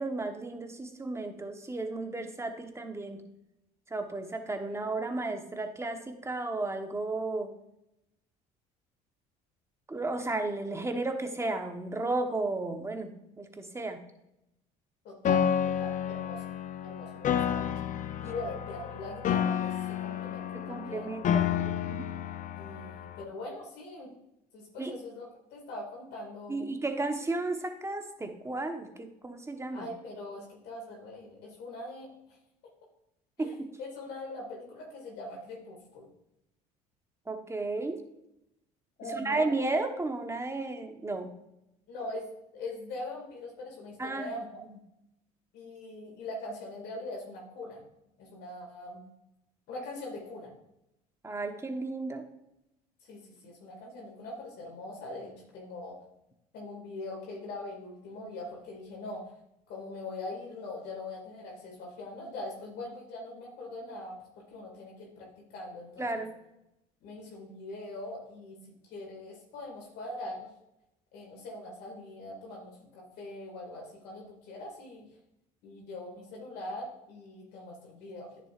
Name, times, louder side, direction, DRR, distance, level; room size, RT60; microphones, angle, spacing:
voice 1, 0.0-3.2 3.9-7.5 9.9-14.0 20.5-22.1 24.8-24.9 26.5-29.9 33.4-33.8 37.3-38.0 39.1-41.3 44.0-44.3 44.7-44.8 51.2-52.2 66.0-66.3, right 2 dB, 15° right, 6 dB, 1.1 m, -33 dB
voice 2, 15.0-17.7 18.2-19.7 20.0-21.1 22.5-24.1 24.5-26.7 29.7-32.4 33.4-33.5 33.8-36.1 39.0-39.5 41.9-42.3 42.5-44.6 45.5-47.8 48.2-49.0 49.7-50.5 53.1-56.0 56.5-59.2 59.7-64.2 64.5-66.3 67.0-68.6 68.8-70.5 71.1-75.1 75.6-78.3, left 2 dB, 70° left, -2 dB, 2.2 m, -42 dB
Piano, 15.2-23.2, left 9 dB, 45° left, 0.6 m, -30 dB
9.9 x 6.8 x 2.5 m, 0.85 s
supercardioid pair, 75°, 18 cm